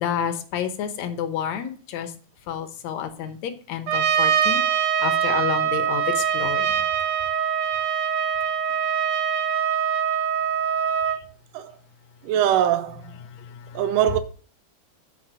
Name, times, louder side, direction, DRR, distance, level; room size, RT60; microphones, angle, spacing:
voice 1, 0.0-2.1 2.5-6.7 13.7-13.8, left 8 dB, 70° left, 2.2 m, -30 dB
Trumpet, 3.9-11.2, right 8 dB, 70° right, 1.4 m, -23 dB
voice 2, 12.2-13.1 13.7-14.2, right 10 dB, 90° right, 2.2 m, -22 dB
7.2 x 5.9 x 6.0 m
omnidirectional pair, 3.6 m